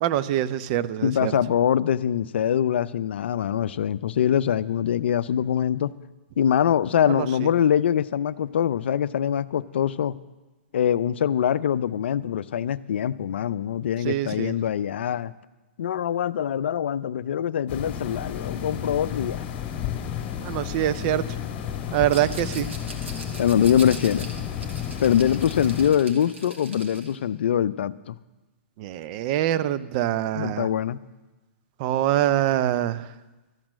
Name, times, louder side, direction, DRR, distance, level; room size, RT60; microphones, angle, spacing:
voice 1, 0.0-1.3 7.1-7.2 14.0-14.5 20.4-21.2 21.9-22.7 28.8-30.7 31.8-33.0, right 12 dB, 40° right, 14 dB, 0.6 m, -24 dB
voice 2, 1.0-5.9 6.4-10.1 10.7-15.3 15.8-19.4 23.4-24.3 25.0-28.2 30.3-31.0, left 9 dB, 65° left, 16 dB, 0.5 m, -23 dB
sound 1, 17.7-25.9, left 9 dB, 30° left, 1.7 m, -32 dB
Rattle, 22.1-27.2, right 2 dB, 85° right, 2.2 m, -41 dB
13.5 x 8.8 x 6.3 m, 1.1 s
figure-of-eight pair, 115°, 7 cm